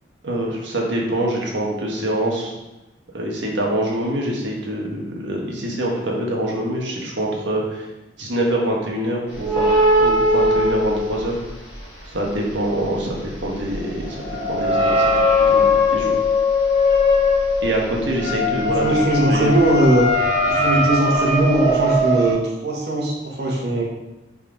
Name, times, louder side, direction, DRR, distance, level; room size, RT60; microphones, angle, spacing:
voice 1, 0.2-2.5 3.1-7.9 8.2-9.7 10.0-11.4 12.1-15.1 15.4-16.1 17.6-19.0 19.2-19.5, right 1 dB, 75° right, -2 dB, 1.6 m, -25 dB
sound 1, 9.3-11.8 12.1-22.3, left 2 dB, 35° left, 1.9 m, -20 dB
voice 2, 18.4-20.1 20.5-23.8, right 1 dB, 60° right, -3 dB, 1.7 m, -19 dB
5.6 x 4.4 x 5.1 m, 0.99 s
head